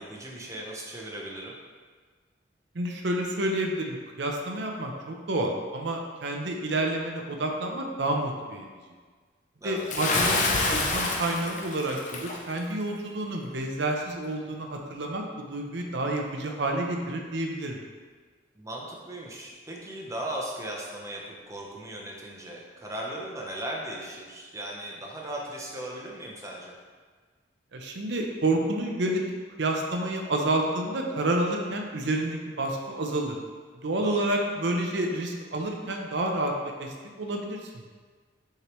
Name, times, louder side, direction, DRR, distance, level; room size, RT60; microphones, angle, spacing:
voice 1, 0.0-1.6 9.6-9.9 18.5-26.7 34.0-34.3, right 1 dB, 15° right, -2 dB, 0.9 m, -37 dB
voice 2, 2.7-8.7 9.6-17.8 27.7-29.2 29.6-33.4 33.8-36.5 36.8-37.6, right 1 dB, 65° right, 2 dB, 0.7 m, -29 dB
Bathtub (filling or washing) / Splash splatter, 9.9-12.4, left 2 dB, 40° left, 0.6 m, -27 dB
6.6 x 4.6 x 3.1 m, 1.5 s
head